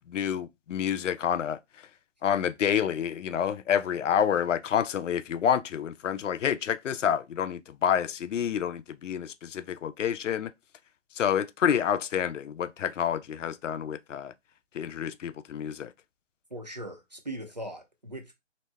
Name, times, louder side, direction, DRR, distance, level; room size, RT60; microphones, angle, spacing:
voice 1, 0.1-1.6 2.2-10.5 11.2-14.3 14.7-15.9, left 8 dB, 85° left, 0.5 m, -28 dB
voice 2, 16.5-18.3, right 1 dB, 35° right, 0.4 m, -39 dB
2.7 x 2.1 x 3.3 m
hypercardioid pair, 175°, 36 cm